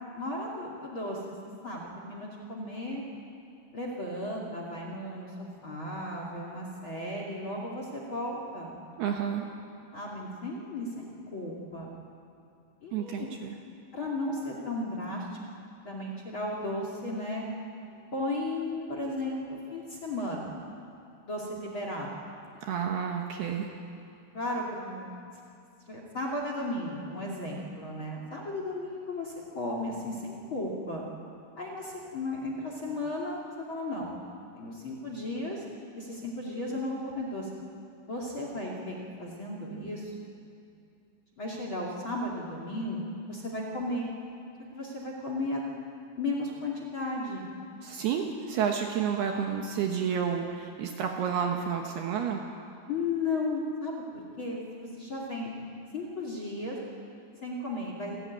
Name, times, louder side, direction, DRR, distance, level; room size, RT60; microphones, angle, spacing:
voice 1, 0.1-1.2 1.6-3.0 3.7-8.8 9.9-11.9 12.8-13.3 13.9-15.3 15.8-17.4 18.1-20.6 21.2-22.1 24.3-25.1 25.9-31.0 31.6-34.1 34.5-35.6 35.9-37.5 38.1-40.1 41.4-44.1 44.7-45.6 46.2-47.4 52.9-54.0 54.4-55.5 55.9-56.8 57.4-58.2, left 2 dB, 35° left, -1 dB, 2.5 m, -35 dB
voice 2, 9.0-9.5 12.9-13.6 22.6-23.7 47.8-52.4, right 7 dB, 70° right, 2 dB, 2.7 m, -30 dB
29.0 x 14.0 x 9.5 m, 2.6 s
omnidirectional pair, 5.6 m